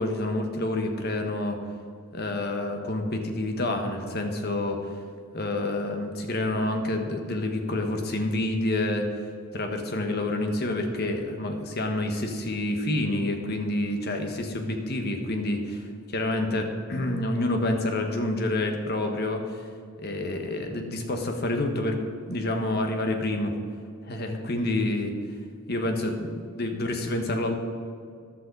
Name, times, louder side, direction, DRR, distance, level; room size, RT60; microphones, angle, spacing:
voice 1, 0.0-1.6 2.1-4.9 5.3-9.1 9.5-19.7 20.0-22.0 22.3-23.5 24.1-25.1 25.7-27.5, left 1 dB, 45° left, 4 dB, 1.4 m, -28 dB
14.5 x 11.0 x 4.1 m, 2.2 s
head